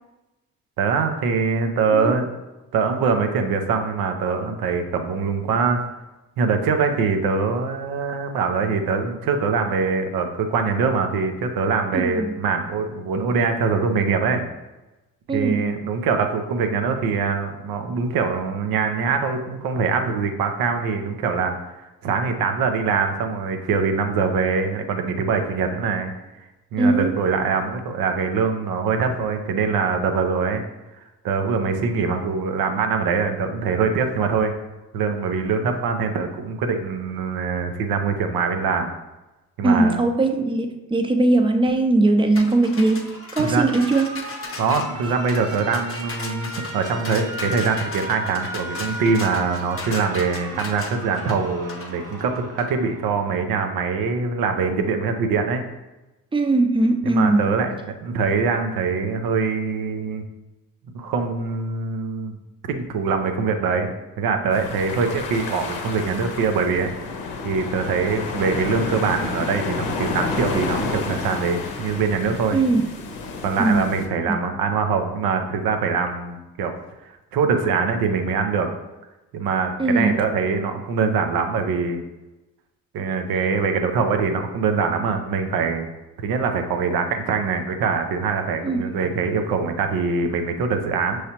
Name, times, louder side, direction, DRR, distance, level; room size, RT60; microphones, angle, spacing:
voice 1, 0.8-2.3 2.7-5.8 6.4-14.4 15.3-26.1 26.7-30.6 31.2-34.5 34.9-38.9 39.6-40.0 43.4-43.6 44.5-55.6 57.0-60.2 60.9-62.4 62.7-66.9 67.4-72.6 73.4-76.8 77.0-78.7 79.3-82.0 82.9-85.9 86.2-91.2, right 5 dB, 75° right, 6 dB, 0.6 m, -23 dB
voice 2, 11.9-12.3 15.3-15.7 26.8-27.2 39.6-44.2 56.3-57.6 72.5-72.8 73.6-73.8 74.3-74.4 79.8-80.2 88.6-88.9, right 2 dB, 15° right, 6 dB, 0.5 m, -20 dB
sound 1, 42.4-52.7, left 4 dB, 40° left, 0.8 m, -37 dB
Alarm, 42.5-53.5, right 2 dB, 40° right, 1.0 m, -36 dB
sound 2, 64.5-74.1, left 3 dB, 80° left, 0.7 m, -30 dB
5.6 x 3.2 x 2.8 m, 1.0 s
supercardioid pair, 60°, 35 cm